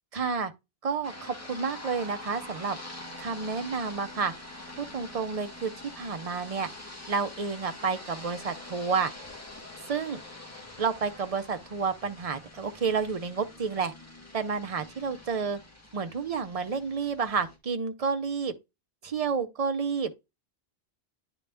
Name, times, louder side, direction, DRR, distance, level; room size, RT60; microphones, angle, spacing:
voice 1, 0.1-0.5 0.8-2.8 3.2-4.3 4.8-6.7 7.1-9.1 9.8-10.2 10.8-13.9 14.3-15.6 15.9-18.5 19.0-20.1, right 5 dB, 40° right, 0.7 m, -30 dB
sound 1, 1.0-17.6, left 2 dB, 15° left, 1.7 m, -45 dB
9.8 x 4.0 x 3.4 m
omnidirectional pair, 1.0 m